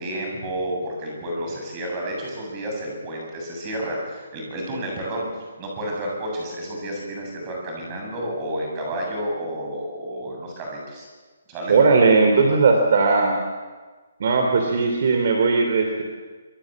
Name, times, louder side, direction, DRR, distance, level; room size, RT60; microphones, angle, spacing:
voice 1, 0.0-5.3 5.6-11.1 11.5-11.8, right 1 dB, 20° right, 0 dB, 7.6 m, -30 dB
voice 2, 11.7-13.4 14.2-16.0, right 4 dB, 45° right, 4 dB, 3.3 m, -18 dB
25.5 x 24.5 x 7.6 m, 1.4 s
hypercardioid pair, 175°, 0 cm